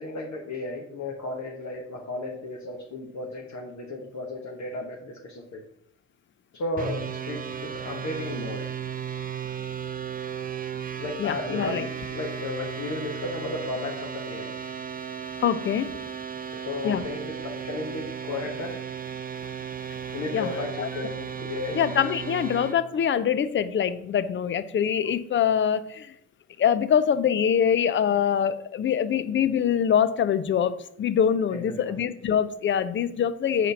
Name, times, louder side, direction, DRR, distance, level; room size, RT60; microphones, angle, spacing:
voice 1, 0.0-5.6 6.5-8.7 11.0-14.5 16.6-18.8 20.1-21.8 31.5-31.9, left 2 dB, 50° left, 0 dB, 1.2 m, -34 dB
sound 1, 6.8-22.8, right 7 dB, 25° right, 0.7 m, -35 dB
voice 2, 11.2-11.9 15.4-15.9 16.8-17.0 20.3-20.9 21.7-26.1 26.6-33.7, left 8 dB, 35° left, 13 dB, 0.6 m, -24 dB
4.9 x 4.4 x 5.2 m, 0.72 s
hypercardioid pair, 50°, 36 cm